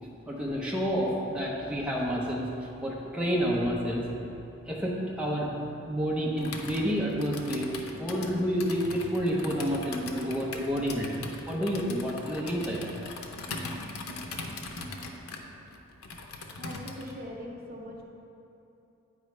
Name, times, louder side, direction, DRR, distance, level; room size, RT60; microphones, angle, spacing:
voice 1, 0.0-2.5 2.8-4.0 4.6-5.5 5.9-13.1, equal, 5° right, -4 dB, 0.7 m, -29 dB
Computer keyboard, 6.4-17.2, left 3 dB, 85° left, 0.6 m, -40 dB
voice 2, 16.6-18.0, equal, 45° right, -1 dB, 0.7 m, -41 dB
9.1 x 4.7 x 3.2 m, 2.8 s
head